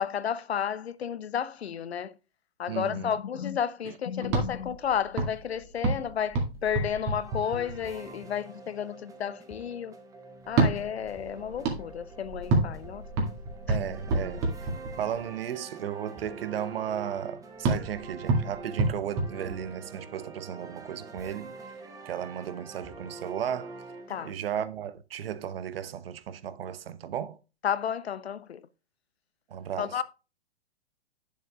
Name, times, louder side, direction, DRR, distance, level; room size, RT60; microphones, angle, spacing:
voice 1, 0.0-2.1 2.6-10.0 10.5-13.0 13.7-13.8 24.1-24.3 27.6-28.6 29.8-30.0, left 8 dB, 80° left, 0.7 m, -32 dB
voice 2, 2.7-3.1 3.8-3.9 4.2-4.3 13.7-14.4 15.0-21.5 22.0-23.7 24.2-27.4 29.5-30.0, right 9 dB, 65° right, 0.7 m, -35 dB
sound 1, 4.2-8.1 10.4-15.3 17.6-20.1, right 3 dB, 35° right, 2.1 m, -29 dB
sound 2, 7.2-24.3, right 3 dB, 10° right, 0.9 m, -46 dB
10.0 x 7.1 x 2.3 m
hypercardioid pair, 115°, 31 cm